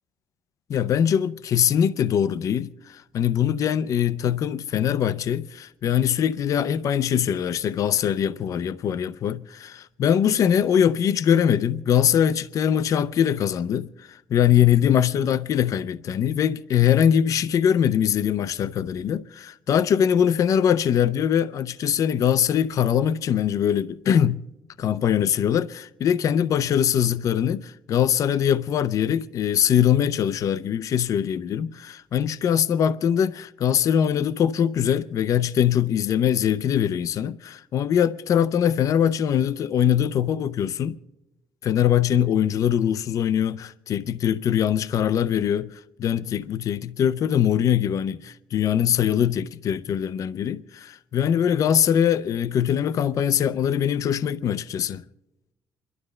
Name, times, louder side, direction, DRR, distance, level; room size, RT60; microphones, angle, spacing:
voice 1, 0.7-24.5 24.8-41.0 41.6-55.0, left 9 dB, 50° left, 0.5 m, -22 dB
28.5 x 12.0 x 3.2 m
cardioid pair, 155°, 7 cm